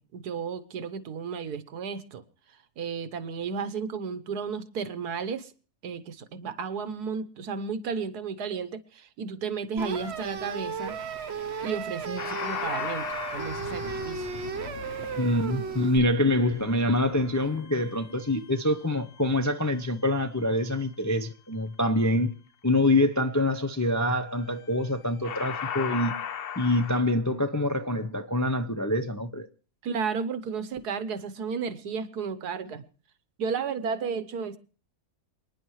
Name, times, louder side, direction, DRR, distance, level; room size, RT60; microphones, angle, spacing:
voice 1, 0.0-2.2 2.8-5.5 5.8-10.9 11.6-13.0 13.3-14.3 29.8-32.8 33.4-34.6, right 6 dB, 90° right, 1.6 m, -33 dB
sound 1, 9.8-16.0, right 6 dB, 45° right, 1.3 m, -35 dB
sound 2, 12.2-19.3 24.6-24.9 25.2-27.0, left 8 dB, 50° left, 0.8 m, -38 dB
voice 2, 15.2-22.3 22.6-26.2 26.6-29.5, left 1 dB, 25° left, 0.4 m, -25 dB
28.0 x 10.0 x 3.1 m
omnidirectional pair, 1.6 m